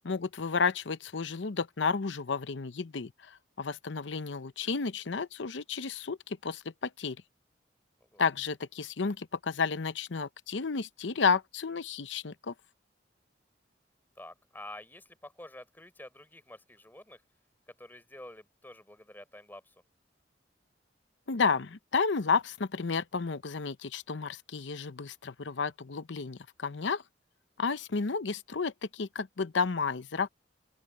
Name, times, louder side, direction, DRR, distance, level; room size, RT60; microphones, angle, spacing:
voice 1, 0.0-7.2 8.2-12.5 21.3-27.0 27.6-30.3, left 5 dB, 85° left, 0.7 m, -32 dB
voice 2, 14.2-17.2 17.7-19.8, left 1 dB, 10° left, 3.7 m, -49 dB
open air
head